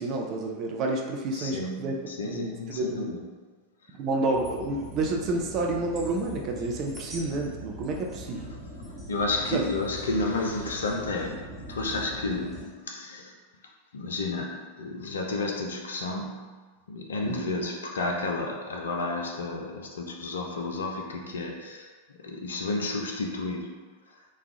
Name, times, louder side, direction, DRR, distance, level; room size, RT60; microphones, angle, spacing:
voice 1, 0.0-1.9 2.3-3.1 4.0-8.5 9.5-9.7 17.3-17.5, right 2 dB, 35° right, 1 dB, 0.5 m, -30 dB
voice 2, 1.3-3.2 9.1-13.3 13.9-16.5 16.9-21.9 22.2-23.9, left 2 dB, 65° left, 2 dB, 0.4 m, -31 dB
sound 1, 4.3-12.7, equal, 20° right, 0.9 m, -41 dB
3.1 x 2.3 x 3.6 m, 1.4 s
figure-of-eight pair, 90°, 0 cm